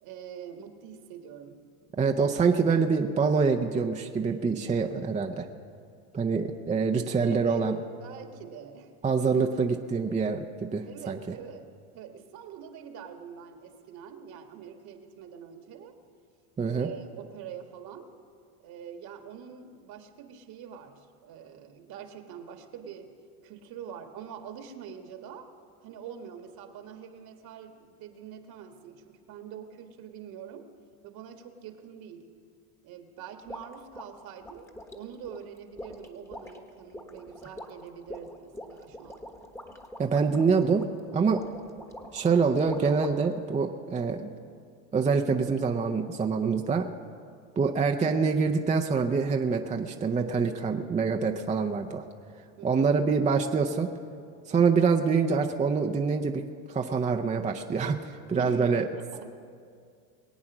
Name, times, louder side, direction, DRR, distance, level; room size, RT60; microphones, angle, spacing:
voice 1, 0.0-1.6 7.2-7.7 8.0-8.9 10.9-15.9 16.7-18.1 18.6-23.1 23.4-25.5 25.8-30.7 31.0-32.3 32.8-39.2 52.6-52.9 58.3-59.3, right 8 dB, 50° right, 6 dB, 1.6 m, -45 dB
voice 2, 2.0-5.5 6.1-7.8 9.0-10.4 10.7-11.2 16.6-16.9 40.0-40.8 41.1-41.4 42.1-44.3 44.9-46.9 47.6-52.0 52.6-53.9 54.5-58.9, right 5 dB, 15° right, 4 dB, 0.6 m, -25 dB
sound 1, 33.5-43.4, left 1 dB, 5° left, 1.2 m, -45 dB
21.5 x 8.5 x 6.1 m, 2.3 s
supercardioid pair, 105°, 46 cm